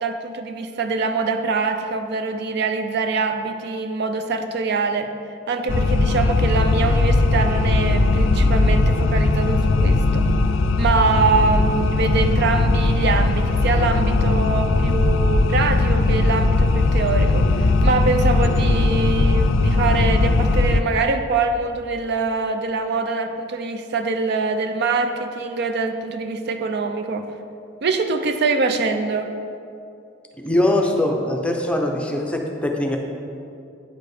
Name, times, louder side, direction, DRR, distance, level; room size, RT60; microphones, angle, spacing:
voice 1, 0.0-5.1 5.5-10.2 10.8-27.3 27.8-29.3, right 4 dB, 60° right, 7 dB, 0.5 m, -24 dB
sound 1, 5.7-20.8, left 2 dB, 90° left, 0.4 m, -18 dB
voice 2, 30.4-33.0, left 1 dB, 5° left, 1 dB, 0.6 m, -22 dB
9.0 x 4.9 x 4.8 m, 2.6 s
head